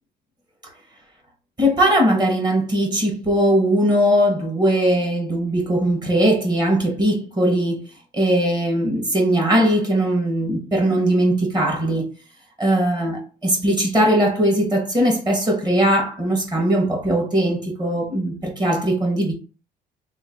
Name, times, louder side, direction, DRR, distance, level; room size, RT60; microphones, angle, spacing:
voice 1, 1.6-7.8 8.1-12.1 12.6-19.3, right 1 dB, 25° right, 1.5 m, -19 dB
3.1 x 2.5 x 3.9 m
cardioid pair, 110°, 17 cm